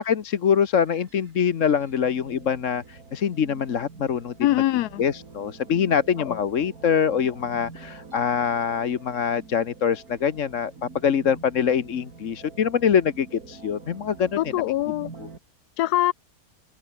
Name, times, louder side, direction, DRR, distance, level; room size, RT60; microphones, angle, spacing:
voice 1, 0.0-4.3 5.0-10.7 11.0-14.4, left 7 dB, 55° left, 1.4 m, -24 dB
sound 1, 0.7-15.4, right 4 dB, 75° right, 3.3 m, -46 dB
voice 2, 4.4-5.0 6.3-6.4 14.4-15.1 15.8-16.1, left 15 dB, 90° left, 1.1 m, -23 dB
open air
omnidirectional pair, 1.6 m